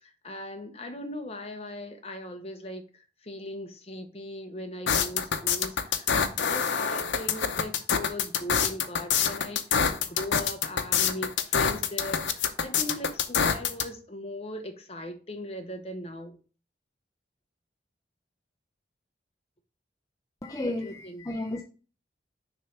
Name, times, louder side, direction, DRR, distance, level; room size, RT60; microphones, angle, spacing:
voice 1, 0.0-16.4 20.6-21.2, left 1 dB, 35° left, 1.0 m, -39 dB
sound 1, 4.9-13.8, left 7 dB, 90° left, 0.7 m, -26 dB
voice 2, 20.4-21.6, left 1 dB, 20° left, 0.5 m, -33 dB
6.6 x 3.3 x 5.8 m
head